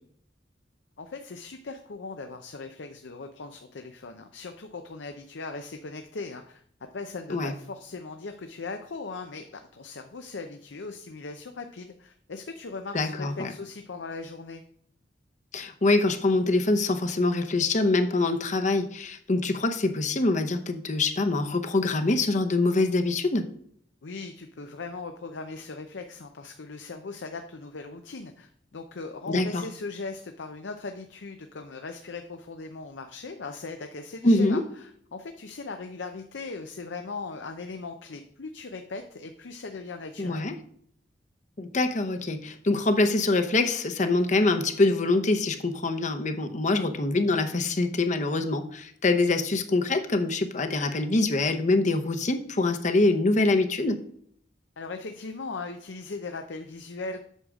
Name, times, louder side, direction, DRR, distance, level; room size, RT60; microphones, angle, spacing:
voice 1, 1.0-6.6 6.9-9.5 9.7-14.6 24.0-40.5 54.8-57.2, left 3 dB, 85° left, 6 dB, 0.7 m, -39 dB
voice 2, 12.9-13.5 15.5-23.5 29.3-29.6 34.2-34.6 40.2-40.5 41.6-54.0, left 2 dB, 40° left, 8 dB, 0.8 m, -24 dB
8.1 x 6.4 x 3.6 m, 0.64 s
head